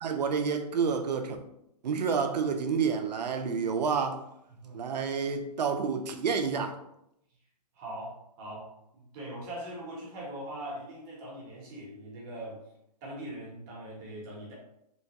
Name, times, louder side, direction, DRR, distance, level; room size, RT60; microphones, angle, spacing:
voice 1, 0.0-1.4 1.8-4.2 4.7-6.8, right 6 dB, 80° right, 6 dB, 0.5 m, -29 dB
voice 2, 4.5-4.9 7.7-12.6 13.0-14.5, right 1 dB, 30° right, -4 dB, 0.9 m, -41 dB
3.0 x 2.2 x 2.8 m, 0.80 s
hypercardioid pair, 150°, 21 cm